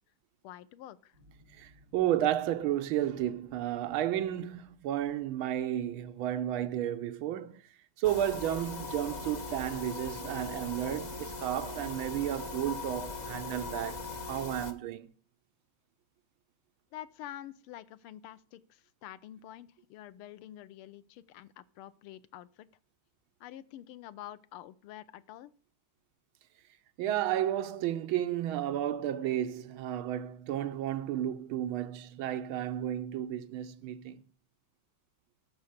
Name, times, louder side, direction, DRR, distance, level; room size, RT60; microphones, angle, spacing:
voice 1, 0.4-1.2 16.9-22.7 23.4-25.5, left 12 dB, 90° left, 1.6 m, -47 dB
sound 1, 1.1-6.6, equal, 50° right, 3.3 m, -62 dB
voice 2, 1.5-7.6 8.0-15.1 27.0-34.2, right 11 dB, 75° right, 1.6 m, -32 dB
sound 2, 8.0-14.7, left 3 dB, 35° left, 0.7 m, -40 dB
13.0 x 5.6 x 6.5 m
omnidirectional pair, 2.3 m